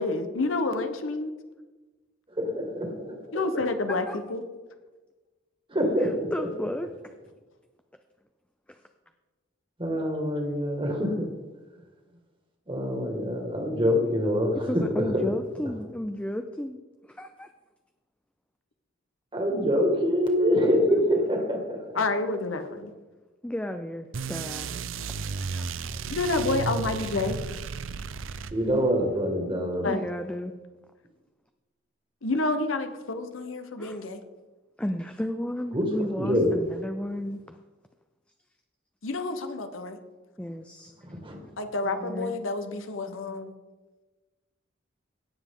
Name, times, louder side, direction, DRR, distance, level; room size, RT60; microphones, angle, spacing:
voice 1, 0.0-1.3 3.3-4.4 21.9-22.9 26.1-27.4 29.8-30.0 32.2-34.2 39.0-40.0 41.6-43.5, left 3 dB, 90° left, 8 dB, 1.0 m, -29 dB
voice 2, 2.3-3.2 5.7-6.3 9.8-11.3 12.7-15.1 19.3-21.9 28.5-29.9 35.7-35.9 36.2-36.5 41.2-41.4, equal, 25° right, 1 dB, 1.9 m, -25 dB
voice 3, 6.0-6.9 8.7-8.8 14.6-17.5 23.4-24.8 25.4-25.9 29.9-30.5 33.8-34.0 34.8-37.6 40.4-40.9 41.8-42.3, left 1 dB, 5° left, 7 dB, 0.4 m, -34 dB
sound 1, 24.1-28.9, right 5 dB, 85° right, 0.5 m, -34 dB
17.0 x 7.1 x 3.8 m, 1.2 s
head